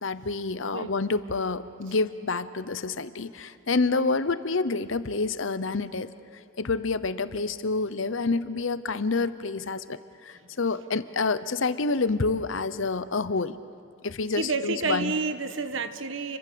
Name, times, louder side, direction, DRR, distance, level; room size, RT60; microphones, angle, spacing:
voice 1, 0.0-6.1 6.6-10.0 10.2-13.6 14.0-15.1, left 3 dB, 70° left, 14 dB, 0.8 m, -28 dB
voice 2, 14.3-16.4, right 4 dB, 65° right, 10 dB, 1.2 m, -29 dB
29.5 x 23.5 x 7.0 m, 2.5 s
head